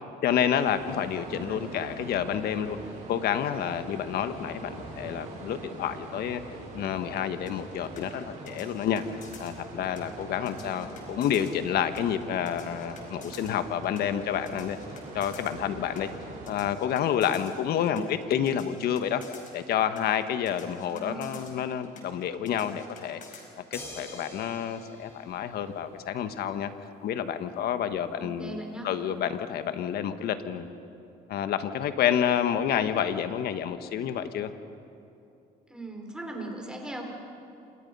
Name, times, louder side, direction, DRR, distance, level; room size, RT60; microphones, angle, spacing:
voice 1, 0.2-2.8 3.1-6.4 6.7-9.0 9.4-14.8 15.1-16.1 16.5-19.2 19.5-23.2 23.6-26.7 27.0-30.7 31.3-34.5, left 9 dB, 70° left, 10 dB, 1.5 m, -29 dB
sound 1, 0.6-16.5, right 3 dB, 45° right, 7.5 m, -43 dB
voice 2, 1.2-1.8 10.5-11.0 17.8-18.1 20.9-21.6 28.1-28.9 35.7-37.0, right 2 dB, 5° right, 1 dB, 5.1 m, -40 dB
sound 2, 7.5-23.5, left 5 dB, 50° left, 5.2 m, -51 dB
sound 3, 23.7-26.2 27.9-28.0, left 1 dB, 15° left, 6.0 m, -45 dB
29.0 x 26.5 x 5.6 m, 2.7 s
cardioid pair, 110°, 17 cm